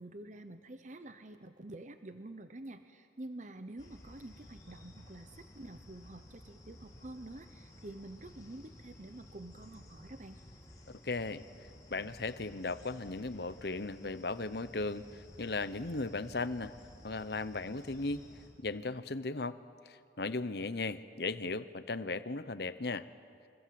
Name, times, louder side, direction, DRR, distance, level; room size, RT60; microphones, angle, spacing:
voice 1, 0.0-10.4, right 1 dB, 45° right, 9 dB, 0.9 m, -48 dB
sound 1, 3.8-18.5, left 1 dB, 20° left, 4.5 m, -55 dB
voice 2, 11.0-11.4 11.9-16.7 17.0-18.2 18.6-19.6 19.9-23.1, left 3 dB, 60° left, 13 dB, 0.9 m, -37 dB
28.0 x 25.0 x 7.8 m, 2.3 s
head